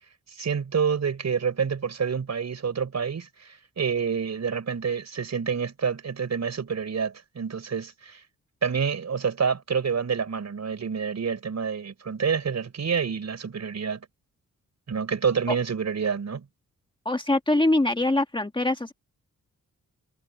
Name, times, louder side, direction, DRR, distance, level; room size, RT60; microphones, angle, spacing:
voice 1, 0.3-8.2 8.6-14.1 14.9-16.5, right 6 dB, 55° right, 5.2 m, -28 dB
voice 2, 17.0-18.9, left 2 dB, 15° left, 1.7 m, -23 dB
cardioid pair, 80°, 33 cm